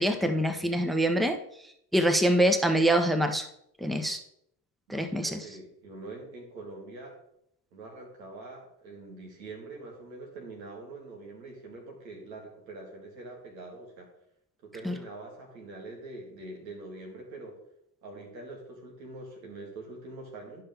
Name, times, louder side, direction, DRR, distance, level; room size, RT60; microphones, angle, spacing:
voice 1, 0.0-1.4 1.9-3.5 3.8-4.2 4.9-5.4 14.8-14.9, right 1 dB, ahead, 7 dB, 0.9 m, -25 dB
voice 2, 4.9-7.1 7.7-14.1 14.6-17.6 18.0-20.6, right 2 dB, 85° right, 0 dB, 2.3 m, -44 dB
11.5 x 5.6 x 3.6 m, 0.74 s
hypercardioid pair, 60°, 49 cm